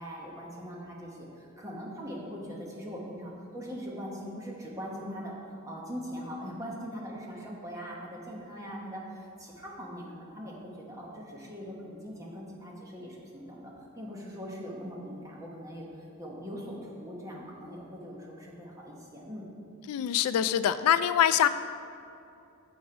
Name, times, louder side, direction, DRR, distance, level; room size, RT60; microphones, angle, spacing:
voice 1, 0.0-19.4, equal, 15° right, -3 dB, 1.0 m, -41 dB
voice 2, 19.9-21.5, left 10 dB, 85° left, 15 dB, 0.3 m, -24 dB
7.1 x 6.2 x 5.0 m, 2.6 s
head